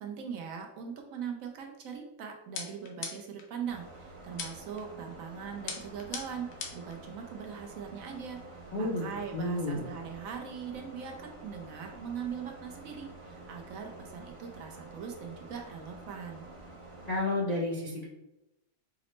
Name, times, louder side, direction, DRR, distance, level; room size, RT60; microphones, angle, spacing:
voice 1, 0.0-16.5, right 7 dB, 70° right, 3 dB, 0.9 m, -41 dB
sound 1, 2.6-3.5 4.4-4.8 5.7-6.9, left 5 dB, 80° left, 1.2 m, -40 dB
sound 2, 3.7-17.2, right 2 dB, 45° right, 0.4 m, -49 dB
voice 2, 8.7-9.1 9.3-9.8 17.1-18.1, left 1 dB, 50° left, -5 dB, 0.5 m, -31 dB
4.8 x 2.0 x 3.0 m, 0.92 s
omnidirectional pair, 1.6 m